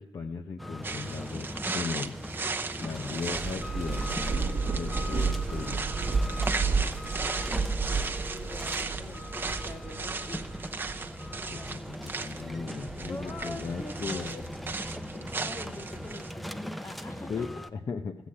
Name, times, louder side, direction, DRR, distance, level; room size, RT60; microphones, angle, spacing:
voice 1, 0.0-2.2 2.8-5.9 11.3-14.3 17.3-18.2, left 5 dB, 55° left, 4 dB, 0.9 m, -37 dB
sound 1, 0.6-17.7, equal, ahead, 0.7 m, -40 dB
sound 2, 0.8-16.3, right 4 dB, 25° right, 0.9 m, -37 dB
Thunder / Rain, 3.0-11.9 12.4-13.8, right 4 dB, 50° right, 1.4 m, -32 dB
voice 2, 8.3-10.6 13.1-14.4 15.1-17.6, left 2 dB, 35° left, 7 dB, 1.7 m, -44 dB
13.5 x 8.3 x 8.6 m, 0.94 s
cardioid pair, 90°, 8 cm